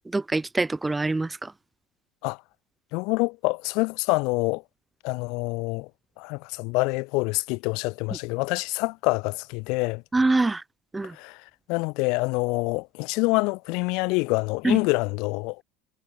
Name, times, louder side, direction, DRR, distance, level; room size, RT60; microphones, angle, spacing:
voice 1, 0.1-1.5 8.1-8.2 10.1-10.6 10.9-11.2 14.6-14.8, right 2 dB, 15° right, 0.7 m, -24 dB
voice 2, 2.9-4.6 5.0-5.9 6.2-10.0 11.2-11.4 11.7-15.6, left 28 dB, 60° left, 2.7 m, -26 dB
hypercardioid pair, 75°, 0 cm